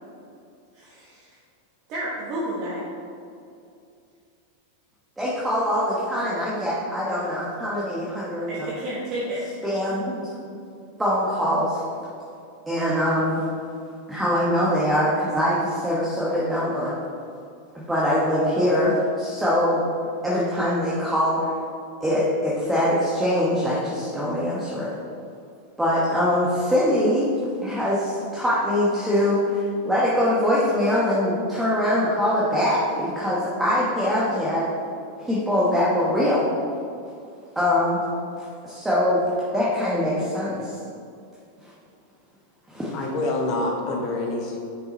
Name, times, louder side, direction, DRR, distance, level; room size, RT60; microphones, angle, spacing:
voice 1, 0.7-1.3 1.9-2.8 8.5-9.4, right 1 dB, 40° right, -7 dB, 1.4 m, -31 dB
voice 2, 5.2-8.7 9.6-10.3 11.0-11.8 12.7-13.4 14.1-16.9 17.9-19.8 20.2-21.5 22.0-25.0 25.8-27.3 27.6-34.7 35.3-36.5 37.5-38.0 38.6-39.2 39.5-40.8 41.6-41.7 42.7-42.9, left 1 dB, 5° right, -8 dB, 1.1 m, -23 dB
voice 3, 42.9-44.6, left 2 dB, 40° left, 0 dB, 0.9 m, -26 dB
6.2 x 5.1 x 4.1 m, 2.5 s
supercardioid pair, 140°, 0 cm